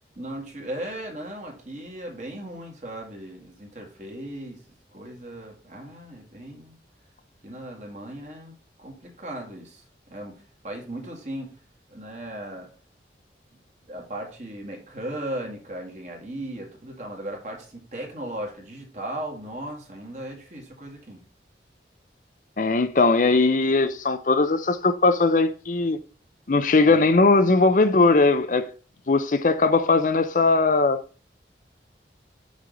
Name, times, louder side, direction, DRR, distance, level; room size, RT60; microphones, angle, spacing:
voice 1, 0.2-4.6 4.9-6.8 7.4-8.5 8.8-9.8 10.1-11.6 11.9-12.7 13.8-21.2 26.8-27.0, right 1 dB, 40° right, 2.1 m, -37 dB
voice 2, 22.6-26.0 26.5-28.6 29.1-31.0, left 3 dB, 45° left, 0.5 m, -19 dB
6.3 x 6.3 x 3.9 m
head